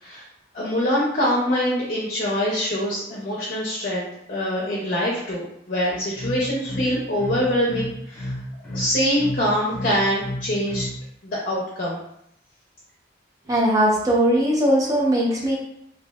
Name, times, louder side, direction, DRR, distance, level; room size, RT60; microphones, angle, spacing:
voice 1, 0.5-8.3 8.7-10.9 11.2-12.0, equal, 50° left, -5 dB, 0.6 m, -24 dB
sound 1, 5.9-11.0, left 1 dB, 10° left, 0.9 m, -31 dB
voice 2, 13.5-15.6, right 1 dB, 20° right, -3 dB, 0.6 m, -19 dB
3.0 x 2.6 x 2.3 m, 0.76 s
head